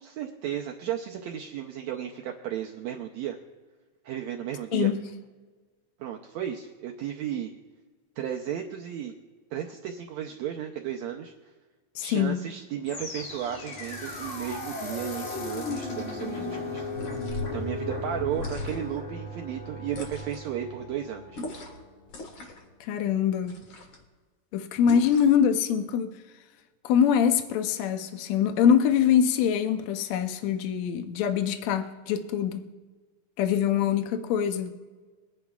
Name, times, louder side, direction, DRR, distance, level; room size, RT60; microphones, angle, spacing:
voice 1, 0.0-3.4 4.0-4.9 6.0-7.5 8.2-9.1 9.5-11.5 12.0-16.9 17.5-21.4, right 10 dB, 80° right, 1.6 m, -34 dB
voice 2, 11.9-12.4 22.8-23.6 24.5-26.2 26.8-32.7 33.4-34.7, left 8 dB, 80° left, 1.6 m, -24 dB
sound 1, 12.9-22.0, left 2 dB, 65° left, 3.7 m, -36 dB
sound 2, 16.9-17.6 18.3-19.0 19.9-20.5 21.3-21.8 22.1-22.7 23.5-24.0 24.9-25.4, left 2 dB, 45° left, 1.9 m, -39 dB
23.0 x 10.0 x 2.4 m
omnidirectional pair, 4.0 m